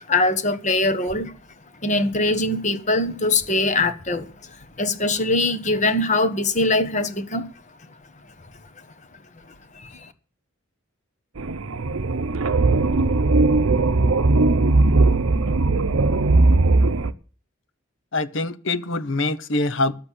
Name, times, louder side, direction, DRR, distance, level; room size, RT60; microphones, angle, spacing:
voice 1, 0.0-1.3 1.8-4.3 4.8-7.5 9.7-10.1, left 2 dB, 35° left, 1.3 m, -22 dB
sound 1, 11.4-17.1, right 3 dB, 80° right, 0.8 m, -18 dB
voice 2, 18.1-19.9, left 2 dB, 60° left, 1.0 m, -24 dB
12.0 x 8.0 x 8.4 m
head